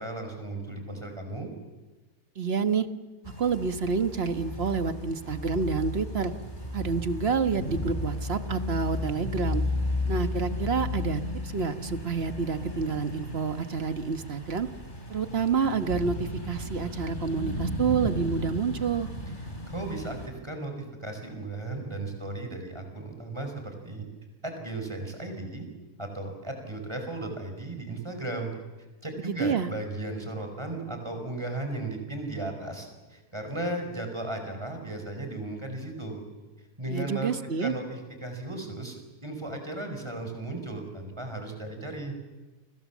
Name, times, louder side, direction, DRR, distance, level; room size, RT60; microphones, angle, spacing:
voice 1, 0.0-1.5 19.7-24.0 24.4-25.7 26.0-28.5 29.0-36.2 36.8-37.3 37.6-42.2, right 2 dB, 15° right, 5 dB, 5.4 m, -35 dB
voice 2, 2.4-2.9 3.4-6.3 6.7-9.6 10.1-14.7 15.1-19.1 29.2-29.7 36.9-37.7, right 5 dB, 45° right, 9 dB, 1.4 m, -28 dB
sound 1, 3.2-20.3, left 1 dB, 30° left, 4.2 m, -34 dB
30.0 x 25.5 x 7.3 m, 1.2 s
omnidirectional pair, 1.6 m